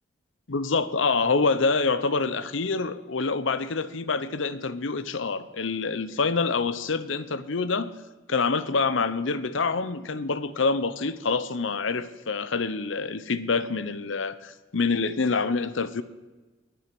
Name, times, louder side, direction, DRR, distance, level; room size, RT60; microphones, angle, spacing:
voice 1, 0.5-7.9 8.3-16.0, left 4 dB, 80° left, 14 dB, 0.8 m, -26 dB
19.0 x 9.2 x 6.1 m, 1.2 s
head